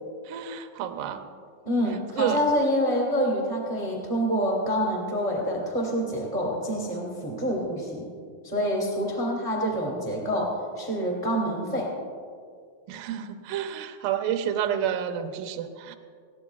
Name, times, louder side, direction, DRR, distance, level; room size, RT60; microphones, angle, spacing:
voice 1, 0.3-1.2 2.2-2.4 12.9-16.0, right 10 dB, 75° right, 7 dB, 2.0 m, -29 dB
voice 2, 1.6-8.1 8.4-11.9, equal, 15° right, -2 dB, 1.2 m, -27 dB
20.0 x 16.5 x 2.4 m, 2.2 s
omnidirectional pair, 4.4 m